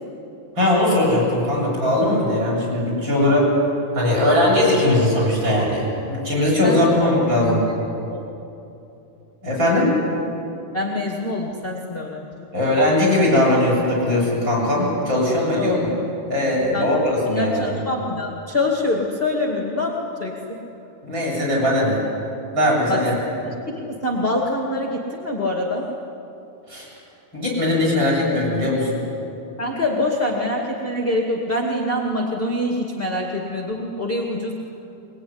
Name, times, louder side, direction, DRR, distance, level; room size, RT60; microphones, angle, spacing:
voice 1, 0.6-3.5 3.9-5.8 6.1-7.6 9.4-9.9 12.5-15.9 16.3-17.7 21.0-22.0 22.5-23.1 26.7-26.9 27.3-29.0, left 1 dB, 25° right, -4 dB, 8.6 m, -19 dB
voice 2, 6.6-7.1 8.1-8.2 10.7-12.3 15.5-15.8 16.7-20.6 22.9-25.9 29.6-34.5, left 1 dB, 25° left, -1 dB, 1.4 m, -25 dB
23.0 x 22.0 x 10.0 m, 2.8 s
omnidirectional pair, 4.9 m